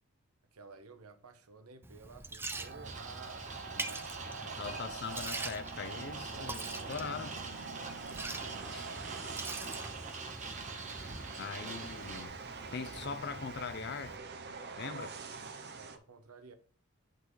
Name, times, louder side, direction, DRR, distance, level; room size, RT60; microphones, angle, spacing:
voice 1, 0.5-3.9 4.7-5.2 5.5-5.7 6.4-7.1 8.4-9.9 11.0-11.4 15.7-16.5, right 4 dB, 90° right, 0.9 m, -55 dB
Liquid, 1.8-14.2, right 2 dB, 10° right, 0.4 m, -45 dB
sound 1, 2.5-16.0, right 4 dB, 50° right, 0.7 m, -45 dB
sound 2, 2.8-12.3, right 4 dB, 35° right, 1.0 m, -45 dB
voice 2, 4.4-7.4 8.7-8.9 11.4-12.4 12.7-14.2 14.8-15.2, left 5 dB, 50° left, 0.6 m, -41 dB
11.0 x 3.9 x 3.1 m
head